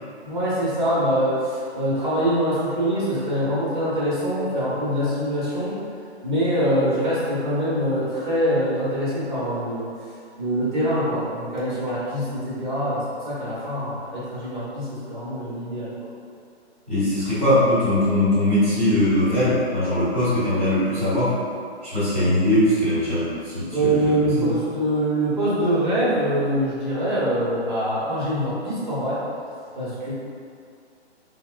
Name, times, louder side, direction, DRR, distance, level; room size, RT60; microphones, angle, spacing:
voice 1, 0.2-5.8 6.2-9.9 10.4-15.9 23.7-29.2 29.8-30.1, right 1 dB, 45° right, -10 dB, 1.0 m, -24 dB
voice 2, 16.9-21.3 21.8-24.1 24.4-24.5, left 1 dB, 10° left, -19 dB, 1.1 m, -21 dB
4.4 x 2.1 x 2.5 m, 2.3 s
hypercardioid pair, 180°, 34 cm